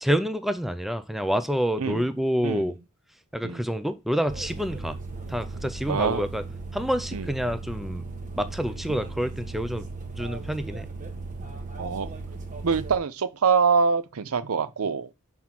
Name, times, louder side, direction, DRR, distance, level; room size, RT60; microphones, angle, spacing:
voice 1, 0.0-2.8 3.3-5.0 5.3-6.4 6.7-8.1 8.4-9.9 10.1-10.9, equal, ahead, 0.4 m, -27 dB
sound 1, 4.3-13.0, right 3 dB, 35° right, 1.2 m, -37 dB
voice 2, 5.9-6.2 7.1-7.3 11.8-12.1 12.6-15.1, right 5 dB, 85° right, 0.6 m, -24 dB
6.0 x 3.7 x 5.9 m
head